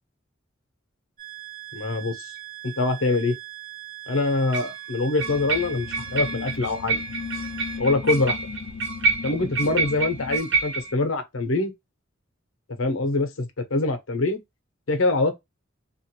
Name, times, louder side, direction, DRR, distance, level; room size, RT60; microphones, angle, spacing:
sound 1, 1.2-8.7 9.1-9.2, right 17 dB, 40° right, 1.3 m, -41 dB
voice 1, 1.7-2.3 2.6-3.3 4.1-7.0 7.8-8.4 9.2-11.7 12.7-14.4 14.9-15.3, left 2 dB, 80° left, 0.8 m, -24 dB
sound 2, 2.4-2.5 4.5-4.8 5.2-10.9, right 3 dB, 60° right, 1.0 m, -28 dB
sound 3, 5.2-10.4, left 5 dB, 45° left, 0.5 m, -37 dB
2.8 x 2.5 x 2.9 m
head